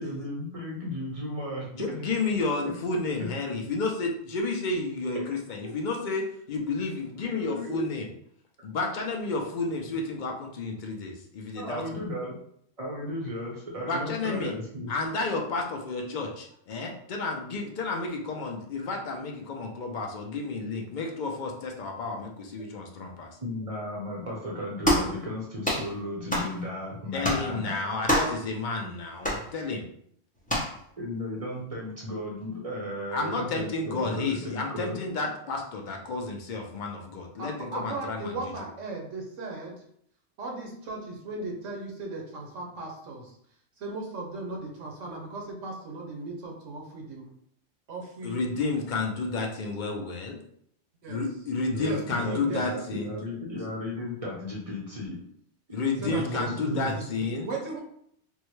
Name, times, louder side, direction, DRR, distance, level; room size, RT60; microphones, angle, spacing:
voice 1, 0.0-1.9 5.1-5.2 7.2-7.8 11.6-12.3 12.8-14.9 22.6-22.7 23.4-27.8 31.0-35.0 51.7-55.2 56.0-57.0, left 1 dB, 35° right, -3 dB, 0.6 m, -35 dB
voice 2, 1.7-8.1 8.6-12.0 13.8-14.5 14.9-23.4 27.1-29.9 33.1-38.4 48.2-50.4 51.1-53.2 55.7-57.5, left 3 dB, 55° left, 2 dB, 0.6 m, -31 dB
sound 1, 24.8-25.1 25.6-25.9 26.3-26.5 27.2-27.5 28.1-28.4 29.2-29.4 30.5-30.7, equal, 10° left, 0.6 m, -25 dB
voice 3, 37.4-39.8 40.4-43.4 43.8-47.3 47.9-48.5 51.0-51.2 51.8-52.7 56.0-57.1 57.4-57.8, right 2 dB, 80° right, 0 dB, 1.2 m, -37 dB
3.5 x 2.2 x 3.0 m, 0.68 s
omnidirectional pair, 1.3 m